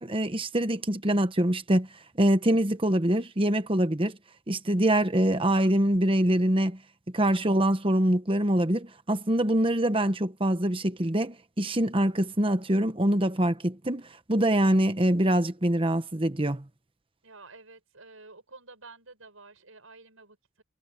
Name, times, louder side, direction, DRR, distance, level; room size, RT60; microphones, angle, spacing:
voice 1, 0.0-1.9 2.2-4.2 4.5-6.8 7.1-16.6, right 1 dB, 25° right, 1.2 m, -24 dB
voice 2, 17.2-20.6, right 3 dB, 85° right, 7.2 m, -50 dB
head